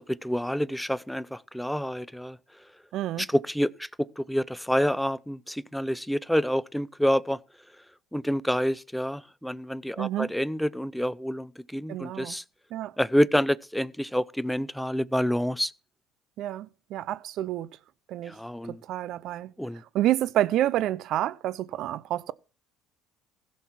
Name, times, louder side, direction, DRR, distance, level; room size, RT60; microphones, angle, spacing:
voice 1, 0.0-2.4 3.2-3.9 4.2-7.4 8.1-12.4 13.0-15.7 18.3-18.8 19.6-19.8, equal, ahead, 0.6 m, -28 dB
voice 2, 2.9-3.3 10.0-10.3 11.9-12.3 12.7-13.0 16.4-17.7 18.1-18.3 18.7-19.5 19.9-22.3, right 13 dB, 65° right, 0.6 m, -28 dB
16.0 x 6.5 x 5.8 m
supercardioid pair, 95°, 0 cm